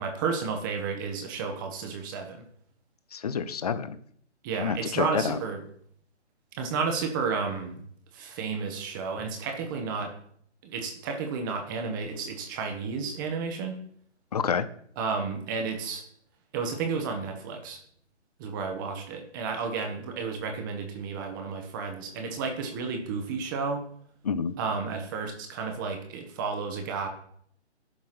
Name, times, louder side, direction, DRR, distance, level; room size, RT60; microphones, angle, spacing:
voice 1, 0.0-2.4 4.4-5.6 6.6-7.8 8.1-10.1 10.6-13.8 15.0-16.0 16.5-17.8 18.4-23.8 24.6-27.1, right 5 dB, 20° right, 4 dB, 1.1 m, -32 dB
voice 2, 3.1-4.0 4.6-5.4 14.3-14.7 24.2-24.5, left 6 dB, 35° left, 14 dB, 0.6 m, -28 dB
11.0 x 4.5 x 5.9 m, 0.65 s
figure-of-eight pair, 145°, 35 cm